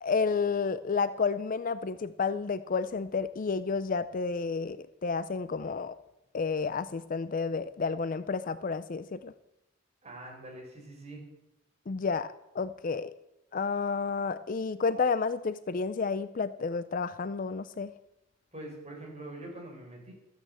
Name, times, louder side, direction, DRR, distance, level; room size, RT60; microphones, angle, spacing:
voice 1, 0.0-5.9 6.3-9.3 11.9-13.1 13.5-17.9, left 5 dB, 40° left, 14 dB, 0.4 m, -31 dB
voice 2, 10.0-11.2 18.5-20.1, right 1 dB, 30° right, -1 dB, 4.6 m, -44 dB
13.5 x 8.9 x 7.8 m, 0.88 s
head